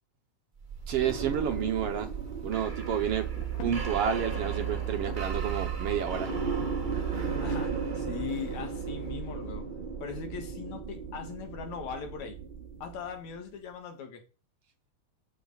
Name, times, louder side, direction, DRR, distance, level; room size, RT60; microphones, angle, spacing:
sound 1, 0.6-13.4, right 6 dB, 50° right, 0.5 m, -34 dB
voice 1, 0.9-2.1 2.4-3.3 3.6-6.3, right 8 dB, 65° right, 1.6 m, -30 dB
Thunder, 3.4-7.9, left 8 dB, 90° left, 2.7 m, -46 dB
voice 2, 7.4-9.7 10.0-12.4 12.8-14.2, left 7 dB, 65° left, 3.0 m, -40 dB
13.0 x 7.3 x 4.0 m
omnidirectional pair, 3.5 m